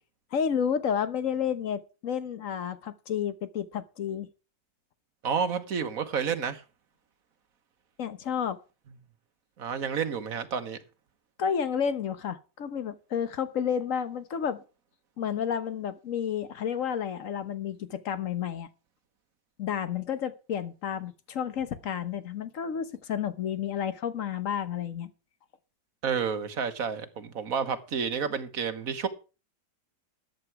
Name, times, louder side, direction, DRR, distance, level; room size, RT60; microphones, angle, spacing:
voice 1, 0.3-4.3 8.0-8.6 11.4-14.6 15.2-18.7 19.6-25.1, left 8 dB, 55° left, 1.2 m, -31 dB
voice 2, 5.2-6.6 9.6-10.8 26.0-29.1, right 6 dB, 55° right, 1.6 m, -30 dB
13.5 x 9.1 x 4.7 m
omnidirectional pair, 1.8 m